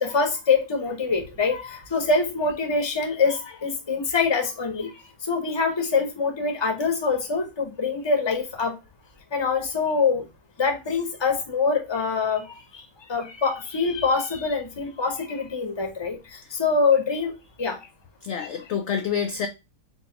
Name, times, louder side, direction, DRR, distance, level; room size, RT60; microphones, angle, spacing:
voice 1, 0.0-1.6 1.9-4.9 5.3-8.7 9.3-10.2 10.6-12.6 13.1-16.2 16.5-17.3 17.6-17.8, left 4 dB, 25° left, 4 dB, 0.8 m, -24 dB
voice 2, 18.2-19.5, left 7 dB, 65° left, 6 dB, 0.7 m, -28 dB
4.2 x 2.3 x 4.4 m, 0.26 s
omnidirectional pair, 1.6 m